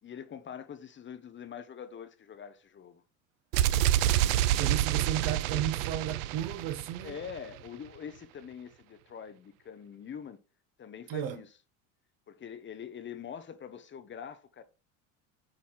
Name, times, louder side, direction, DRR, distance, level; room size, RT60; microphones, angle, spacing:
voice 1, 0.0-3.0 7.0-10.4 10.8-11.5 12.3-14.6, left 7 dB, 30° left, 0.9 m, -44 dB
sound 1, 3.5-7.4, right 13 dB, 80° right, 0.6 m, -27 dB
voice 2, 4.6-7.1 11.1-11.4, right 10 dB, 60° right, 1.4 m, -34 dB
8.8 x 3.1 x 5.7 m
supercardioid pair, 105°, 39 cm